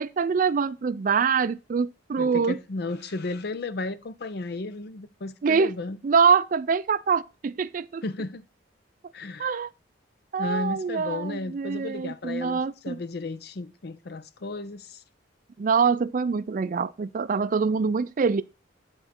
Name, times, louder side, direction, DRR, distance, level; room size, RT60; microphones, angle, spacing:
voice 1, 0.0-2.6 5.4-5.7 6.0-8.0 9.4-9.7 10.3-13.0 15.6-18.4, right 5 dB, 45° right, 0.4 m, -24 dB
voice 2, 2.2-6.0 8.0-8.4 9.1-9.6 10.4-15.0, left 3 dB, 55° left, 0.6 m, -34 dB
9.3 x 3.9 x 5.8 m
head